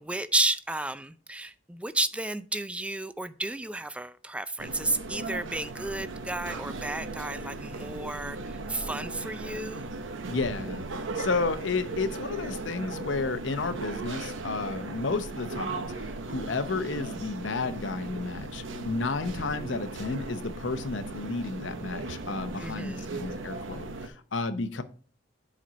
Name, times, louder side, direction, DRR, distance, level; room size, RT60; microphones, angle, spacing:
voice 1, 0.0-9.9 22.6-23.2, right 2 dB, 5° right, 0.4 m, -32 dB
sound 1, 4.6-24.1, right 3 dB, 85° right, 0.8 m, -37 dB
voice 2, 10.3-10.8 11.1-24.8, left 3 dB, 70° left, 0.7 m, -32 dB
7.6 x 4.2 x 5.1 m
head